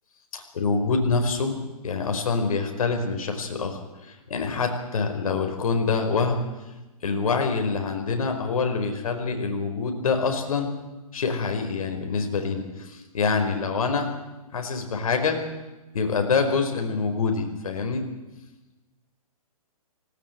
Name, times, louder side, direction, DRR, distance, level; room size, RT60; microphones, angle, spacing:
voice 1, 0.3-1.6 1.8-6.4 7.0-10.7 11.1-14.1 14.5-15.4 15.9-18.1, left 4 dB, 65° left, 5 dB, 5.1 m, -26 dB
19.0 x 18.5 x 9.4 m, 1.1 s
hypercardioid pair, 145°, 19 cm